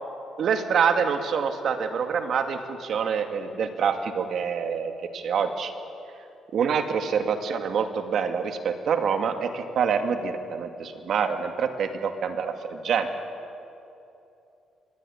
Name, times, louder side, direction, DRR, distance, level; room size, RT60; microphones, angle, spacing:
voice 1, 0.4-5.7 6.5-13.1, right 6 dB, 65° right, 7 dB, 2.3 m, -26 dB
25.0 x 21.5 x 8.8 m, 2.8 s
cardioid pair, 90°, 0 cm